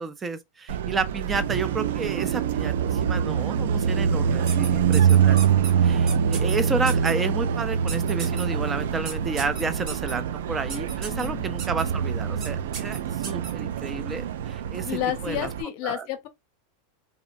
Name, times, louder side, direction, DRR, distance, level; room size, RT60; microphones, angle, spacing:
voice 1, 0.0-15.5 15.8-16.1, right 4 dB, 20° right, 0.5 m, -31 dB
Car passing by, 0.7-15.6, right 8 dB, 80° right, 0.3 m, -25 dB
sound 1, 4.5-5.7 6.1-6.6 6.9-7.1 7.9-8.4 9.1-10.1 10.7-11.3 11.6-11.8 12.4-12.5 12.7-13.5, right 5 dB, 40° right, 1.3 m, -35 dB
voice 2, 11.1-11.5 14.8-16.3, left 12 dB, 55° left, 0.6 m, -30 dB
2.6 x 2.1 x 2.5 m
supercardioid pair, 135°, 0 cm